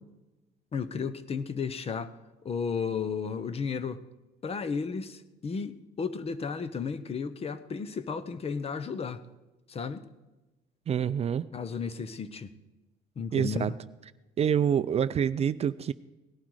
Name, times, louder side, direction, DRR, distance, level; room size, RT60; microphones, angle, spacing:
voice 1, 0.7-2.1 2.4-4.0 4.4-9.2 9.7-10.1 11.5-12.5 13.2-13.7, left 5 dB, 35° left, 0.9 m, -33 dB
voice 2, 10.9-11.5 13.3-13.7 14.4-15.9, right 8 dB, 40° right, 0.4 m, -26 dB
18.0 x 11.5 x 4.8 m
cardioid pair, 110°, 17 cm